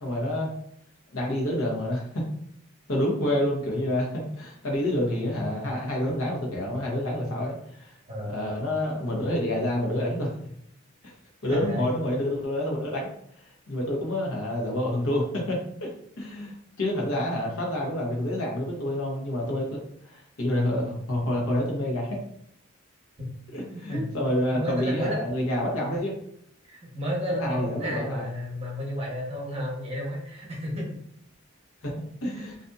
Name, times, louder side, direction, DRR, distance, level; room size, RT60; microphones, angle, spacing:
voice 1, 0.0-0.5 1.1-2.2 2.9-8.0 8.3-10.3 11.0-11.1 11.4-13.1 13.7-15.9 16.2-22.2 23.5-26.1 27.4-28.2 31.8-32.5, left 1 dB, 85° left, -2 dB, 0.9 m, -28 dB
voice 2, 8.1-8.4 11.5-11.9 23.6-24.0 24.5-25.2 25.8-26.0 26.7-30.9 32.3-32.5, equal, 30° right, -3 dB, 0.8 m, -32 dB
2.6 x 2.6 x 2.3 m, 0.70 s
head